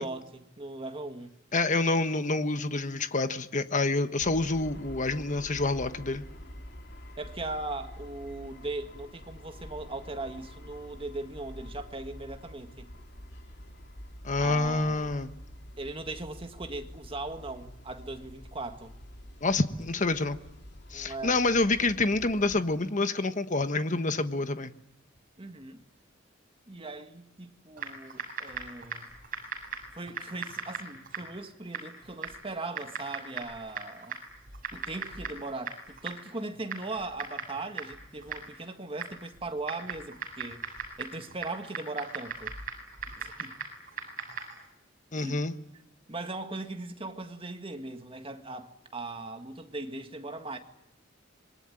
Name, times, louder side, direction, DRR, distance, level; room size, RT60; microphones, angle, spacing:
voice 1, 0.0-1.3 7.2-12.9 14.4-15.2 15.8-18.9 20.9-21.4 25.4-25.8 26.7-29.1 29.9-34.2 34.7-40.7 41.0-42.5 43.2-43.6 45.2-45.4 46.1-50.6, right 2 dB, 30° right, 1.8 m, -39 dB
voice 2, 1.5-6.2 14.2-15.3 19.4-20.4 20.9-24.7 45.1-45.5, left 2 dB, 40° left, 1.3 m, -27 dB
sound 1, 4.2-22.6, equal, 60° left, 3.2 m, -47 dB
Typing, 27.8-44.7, right 5 dB, 45° right, 7.4 m, -40 dB
26.0 x 22.5 x 10.0 m
head